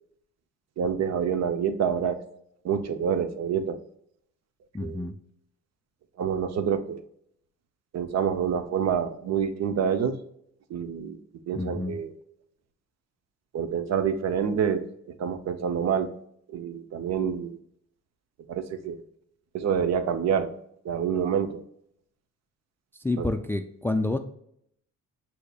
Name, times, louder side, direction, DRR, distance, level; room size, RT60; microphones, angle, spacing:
voice 1, 0.8-2.3 2.6-3.8 4.8-5.0 6.2-7.0 7.9-10.2 10.7-11.2 11.5-12.1 13.5-14.9 15.2-16.2 16.5-17.6 18.5-19.0 19.5-20.6 20.8-21.6 23.2-23.3, right 7 dB, 60° right, 10 dB, 0.7 m, -27 dB
voice 2, 4.7-5.1 11.5-12.0 23.0-24.2, left 2 dB, 10° left, 8 dB, 0.3 m, -28 dB
8.0 x 2.8 x 2.3 m, 0.70 s
cardioid pair, 90°, 30 cm